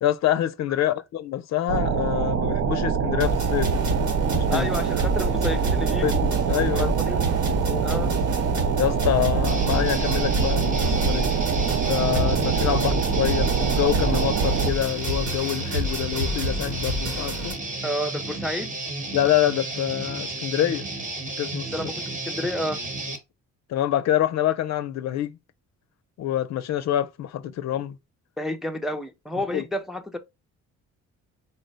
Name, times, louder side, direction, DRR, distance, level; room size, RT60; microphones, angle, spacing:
voice 1, 0.0-3.7 4.3-4.7 6.0-6.9 7.6-7.9 8.8-11.3 11.9-17.6 19.1-20.9 21.4-21.7 23.7-25.4 26.2-28.0 29.5-29.6, left 11 dB, 60° left, 0.5 m, -26 dB
sound 1, 1.7-14.7, right 6 dB, 55° right, 0.5 m, -24 dB
sound 2, 3.2-17.5, right 1 dB, 75° right, 1.5 m, -29 dB
voice 2, 4.5-6.2 6.6-7.3 7.8-8.1 17.8-18.7 21.7-22.8 28.4-30.2, left 1 dB, ahead, 0.4 m, -30 dB
Guitar, 9.5-23.2, right 2 dB, 25° right, 1.0 m, -33 dB
4.1 x 2.0 x 3.9 m
cardioid pair, 90°, 30 cm